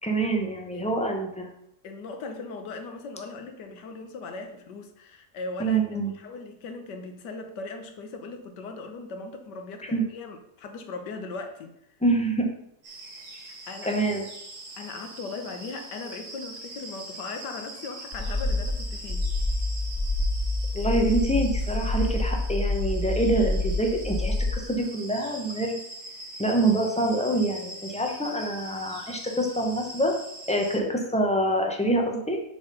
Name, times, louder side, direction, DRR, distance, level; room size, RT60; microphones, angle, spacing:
voice 1, 0.0-1.5 5.6-6.1 9.9-10.0 12.0-12.5 13.8-14.2 20.7-25.8 26.4-30.1 30.5-32.4, right 1 dB, 10° left, 1 dB, 0.5 m, -26 dB
voice 2, 1.8-5.8 6.1-11.8 13.5-13.9 14.8-19.3, left 3 dB, 70° left, 6 dB, 1.5 m, -38 dB
sound 1, 12.8-30.8, right 2 dB, 80° right, 2.5 m, -42 dB
sound 2, 18.1-24.5, left 2 dB, 40° left, 3.0 m, -27 dB
6.8 x 4.2 x 5.4 m, 0.77 s
omnidirectional pair, 1.9 m